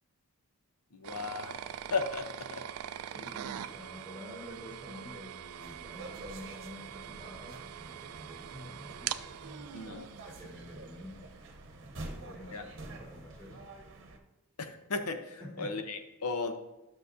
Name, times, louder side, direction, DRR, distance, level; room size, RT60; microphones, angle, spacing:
voice 1, 0.9-1.6 1.9-2.6 9.7-10.1 12.5-12.6 14.6-16.5, left 4 dB, 80° left, 8 dB, 0.8 m, -35 dB
sound 1, 1.0-11.9, right 10 dB, 80° right, 0.4 m, -43 dB
voice 2, 3.1-11.3 12.0-13.7 15.4-15.8, left 1 dB, 10° left, -8 dB, 3.1 m, -48 dB
sound 2, 5.6-14.2, right 2 dB, 55° right, 0.9 m, -48 dB
12.0 x 6.4 x 2.6 m, 0.98 s
head